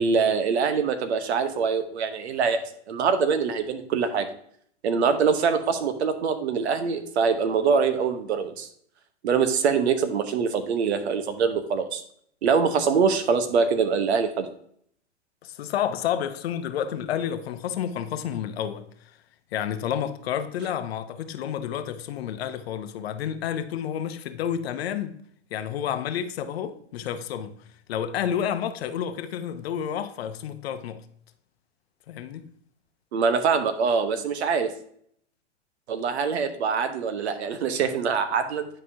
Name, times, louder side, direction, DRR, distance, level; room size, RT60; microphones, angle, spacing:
voice 1, 0.0-2.6 2.9-4.3 4.8-8.7 9.2-12.0 12.4-14.5 33.1-34.7 35.9-38.7, right 5 dB, 65° right, 1.1 m, -24 dB
voice 2, 15.4-19.2 19.5-25.2 25.5-27.6 27.9-31.1 32.1-32.5, left 9 dB, 60° left, 0.8 m, -30 dB
9.7 x 5.1 x 2.7 m
hypercardioid pair, 110°, 35 cm